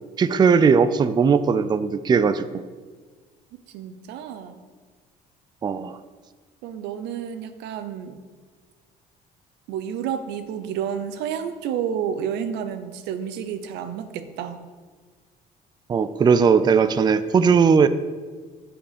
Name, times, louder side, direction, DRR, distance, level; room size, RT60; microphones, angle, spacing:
voice 1, 0.2-2.6 5.6-6.0 15.9-17.9, right 6 dB, 25° right, 13 dB, 0.4 m, -18 dB
voice 2, 3.7-4.6 6.6-8.2 9.7-14.6, right 8 dB, 90° right, 11 dB, 0.7 m, -30 dB
8.2 x 5.9 x 5.1 m, 1.4 s
cardioid pair, 110°, 17 cm